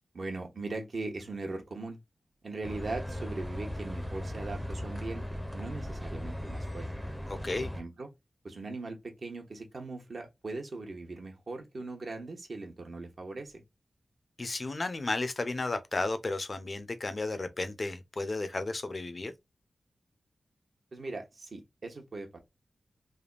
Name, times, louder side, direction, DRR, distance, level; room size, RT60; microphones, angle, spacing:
voice 1, 0.1-2.0 2.4-5.3 5.5-6.9 7.6-8.1 8.4-13.6 20.9-22.4, right 3 dB, 60° right, 0.9 m, -40 dB
sound 1, 2.6-7.8, equal, ahead, 0.6 m, -37 dB
voice 2, 7.3-7.7 14.4-19.3, left 2 dB, 40° left, 0.5 m, -33 dB
3.4 x 2.2 x 2.3 m
wide cardioid pair, 80°, 0 cm